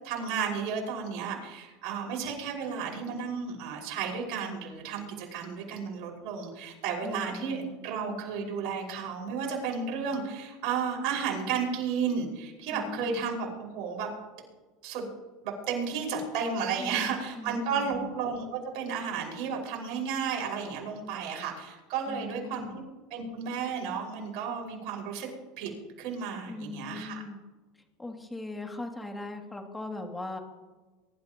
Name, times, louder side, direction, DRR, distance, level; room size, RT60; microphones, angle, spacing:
voice 1, 0.0-14.1 14.8-15.1 15.4-22.8 23.1-25.3 25.6-25.7 26.0-27.2, right 6 dB, 65° right, 0 dB, 5.5 m, -33 dB
voice 2, 7.0-7.8 12.7-13.2 16.8-18.1 22.1-22.8 26.5-27.4 28.0-30.4, left 2 dB, 10° left, 2 dB, 2.6 m, -40 dB
23.5 x 12.5 x 3.0 m, 1.2 s
supercardioid pair, 100°, 0 cm